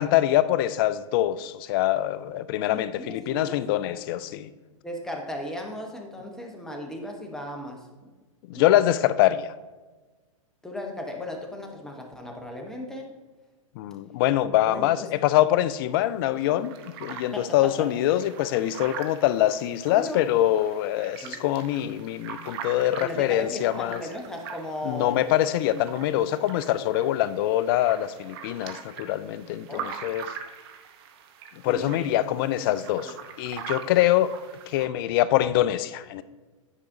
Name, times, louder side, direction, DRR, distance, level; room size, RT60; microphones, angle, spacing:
voice 1, 0.0-4.5 8.5-9.5 13.8-16.7 17.0-24.0 24.8-30.2 31.6-34.3 34.7-36.2, left 13 dB, 40° left, 15 dB, 0.4 m, -24 dB
voice 2, 2.7-3.9 4.8-7.9 8.5-8.7 10.6-13.1 14.7-15.1 17.3-17.9 19.9-20.2 21.2-21.4 23.0-25.3 25.7-25.8 29.7-29.9 31.6-32.1 32.6-32.7, left 1 dB, 5° left, 1 dB, 0.9 m, -36 dB
sound 1, 15.6-15.7 16.1-16.2 16.4-34.9, right 7 dB, 50° right, 0.8 m, -42 dB
9.7 x 4.9 x 2.6 m, 1.3 s
hypercardioid pair, 120°, 17 cm